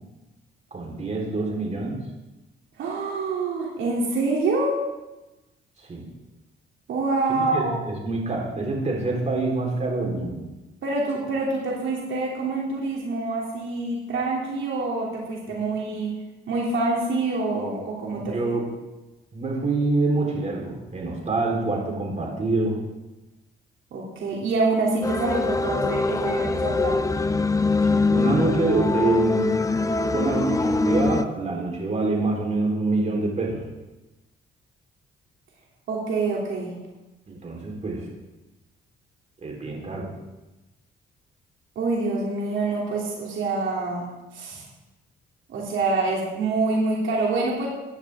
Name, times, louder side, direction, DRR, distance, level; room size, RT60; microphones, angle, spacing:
voice 1, 0.7-2.0 5.8-6.0 7.3-10.4 18.1-18.6 19.3-22.8 27.8-29.7 30.1-33.7 37.3-38.1 39.4-40.1, right 3 dB, 35° right, -1 dB, 4.2 m, -26 dB
voice 2, 2.8-4.8 6.9-7.7 10.8-16.1 16.5-18.3 23.9-27.0 35.9-36.7 41.7-44.6 45.5-47.7, right 3 dB, 75° right, -3 dB, 3.1 m, -26 dB
sound 1, 25.0-31.2, left 3 dB, 15° left, 0.6 m, -23 dB
15.5 x 10.5 x 3.7 m, 1.1 s
cardioid pair, 90°, 20 cm